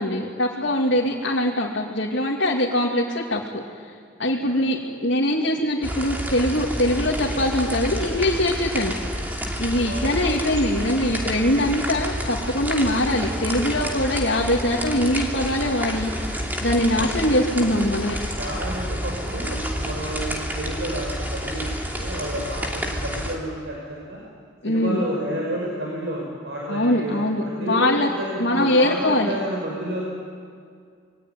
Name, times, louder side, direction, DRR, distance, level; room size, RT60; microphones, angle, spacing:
voice 1, 0.0-3.6 4.2-8.9 9.6-18.3 24.6-25.1 26.7-28.1 28.4-29.3, left 1 dB, 65° left, -3 dB, 2.7 m, -22 dB
sound 1, 5.8-23.4, equal, 10° right, 2.7 m, -29 dB
voice 2, 16.9-17.9 18.4-24.2 24.7-30.1, right 1 dB, 60° right, -3 dB, 5.8 m, -31 dB
27.5 x 23.0 x 9.5 m, 2.1 s
head